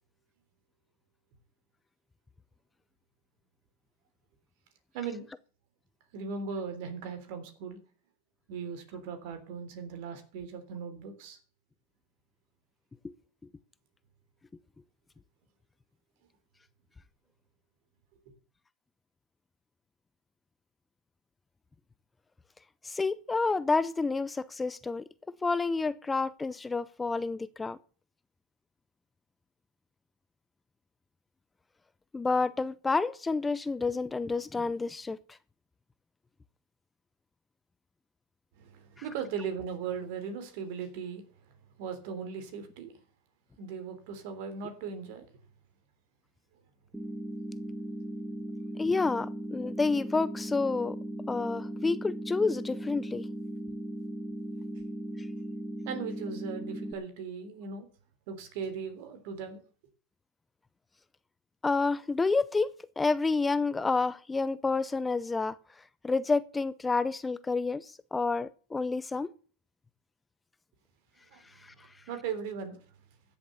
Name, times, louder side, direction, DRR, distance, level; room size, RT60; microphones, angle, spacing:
voice 1, 4.9-5.3 6.1-7.8 8.5-11.4 38.6-41.2 41.8-42.9 43.6-45.3 55.8-57.9 58.3-59.6 71.3-71.4 72.1-72.8, right 6 dB, 60° right, 3.3 m, -38 dB
voice 2, 22.8-25.1 25.4-27.8 32.1-35.2 48.8-51.0 51.3-53.2 61.6-65.6 66.0-69.3 71.6-71.7, left 3 dB, 15° left, 0.5 m, -29 dB
sound 1, 46.9-56.9, right 1 dB, 5° right, 1.8 m, -38 dB
14.0 x 7.1 x 6.9 m
hypercardioid pair, 100°, 0 cm